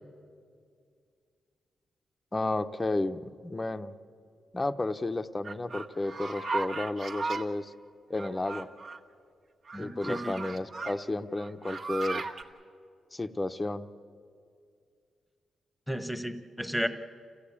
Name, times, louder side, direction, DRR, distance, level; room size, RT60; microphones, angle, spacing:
voice 1, 2.3-3.9 4.5-7.7 8.1-8.7 9.8-12.2 13.1-13.9, left 2 dB, 15° left, 10 dB, 0.6 m, -32 dB
sound 1, 5.4-7.4 8.1-9.0 9.7-10.9 11.4-12.4, right 3 dB, 50° right, 1.5 m, -36 dB
voice 2, 9.7-10.3 15.9-16.9, equal, ahead, 10 dB, 1.0 m, -33 dB
28.0 x 15.5 x 8.5 m, 2.3 s
wide cardioid pair, 140°, 0 cm